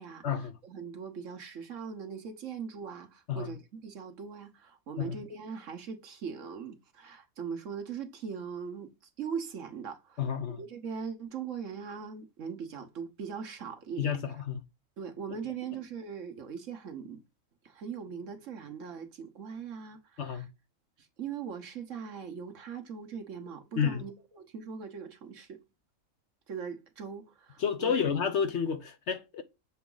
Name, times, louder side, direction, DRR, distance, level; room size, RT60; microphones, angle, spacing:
voice 1, 0.0-14.2 15.0-17.2 17.6-20.5 21.0-25.6 26.5-28.0, right 6 dB, 65° right, 1.4 m, -40 dB
voice 2, 10.2-10.6 14.0-14.2 14.5-14.6 20.2-20.5 23.8-24.0 27.6-29.4, left 7 dB, 60° left, 1.0 m, -30 dB
7.0 x 3.5 x 3.8 m
omnidirectional pair, 1.5 m